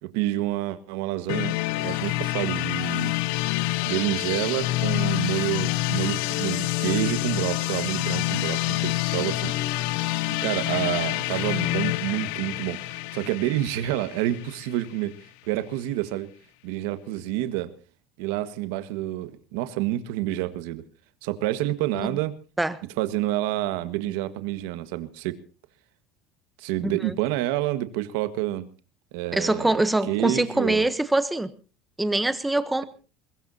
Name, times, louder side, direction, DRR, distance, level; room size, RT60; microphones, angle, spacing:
voice 1, 0.0-3.1 3.8-9.9 10.4-15.2 15.4-16.3 16.6-17.7 18.2-20.8 21.2-22.4 23.0-25.4 26.6-28.7 29.1-30.8, right 14 dB, 80° right, 11 dB, 1.6 m, -28 dB
sound 1, 1.3-15.0, left 18 dB, 70° left, 0.9 m, -27 dB
voice 2, 26.8-27.2 29.3-31.5 32.0-32.8, right 2 dB, 5° right, 14 dB, 0.9 m, -24 dB
21.5 x 21.5 x 2.8 m, 0.34 s
cardioid pair, 180°, 0 cm